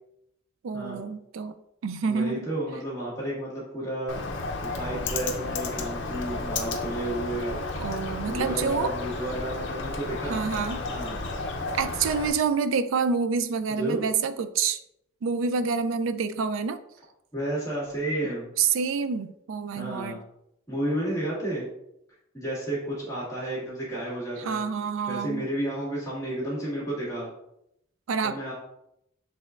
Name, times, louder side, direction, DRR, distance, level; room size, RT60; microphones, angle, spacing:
voice 1, 0.6-1.5 1.8-2.5 7.7-8.9 10.3-10.8 11.7-14.8 15.2-16.8 18.6-20.2 24.4-25.5 28.1-28.5, right 5 dB, 75° right, 11 dB, 0.4 m, -27 dB
voice 2, 2.1-4.2 4.6-7.7 8.3-10.4 10.8-11.2 13.7-14.0 17.3-18.5 19.7-20.2 20.7-21.7 22.3-24.6 25.1-27.3 28.2-28.5, right 1 dB, 15° left, -6 dB, 1.5 m, -32 dB
Bird, 4.1-12.3, left 3 dB, 60° left, 0.6 m, -32 dB
6.4 x 3.4 x 2.4 m, 0.80 s
head